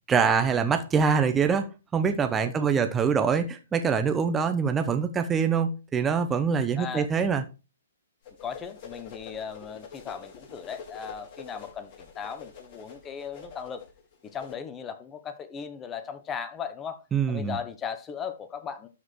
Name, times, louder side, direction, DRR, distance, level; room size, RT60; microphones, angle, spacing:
voice 1, 0.1-7.4 17.1-17.6, right 6 dB, 15° right, 0.9 m, -24 dB
voice 2, 2.5-2.8 6.8-7.1 8.4-13.8 14.3-18.9, left 7 dB, 20° left, 1.1 m, -37 dB
sound 1, 8.2-14.5, left 6 dB, 40° left, 4.6 m, -46 dB
12.5 x 4.9 x 4.6 m
hypercardioid pair, 130°, 0 cm